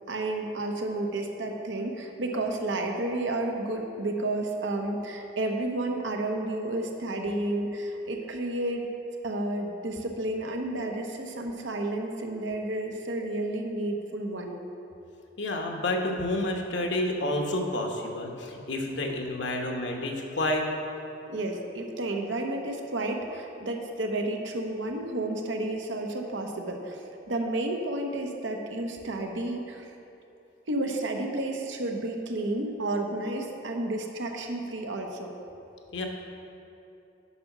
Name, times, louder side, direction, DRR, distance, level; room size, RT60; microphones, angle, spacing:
voice 1, 0.1-8.9 9.2-14.6 21.3-29.9 30.7-35.4, right 2 dB, 90° right, 2 dB, 1.0 m, -31 dB
voice 2, 15.4-20.7 35.9-36.1, left 1 dB, 75° left, 2 dB, 1.1 m, -29 dB
8.5 x 5.7 x 6.0 m, 2.9 s
head